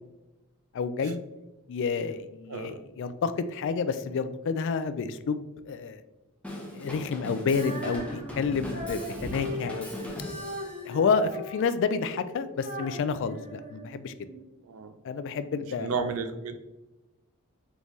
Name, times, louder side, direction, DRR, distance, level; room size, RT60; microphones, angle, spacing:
voice 1, 0.7-1.2 1.7-6.0 6.7-9.9 10.8-14.3 15.0-15.9, left 5 dB, 55° left, 12 dB, 0.3 m, -29 dB
voice 2, 2.5-2.8 14.6-14.9 15.8-16.6, right 5 dB, 65° right, 9 dB, 0.5 m, -32 dB
Drum kit / Drum, 6.4-10.9, left 1 dB, 5° left, 0.7 m, -39 dB
Female singing, 7.4-14.5, equal, 40° right, 1.0 m, -39 dB
4.0 x 3.5 x 3.0 m, 1.0 s
head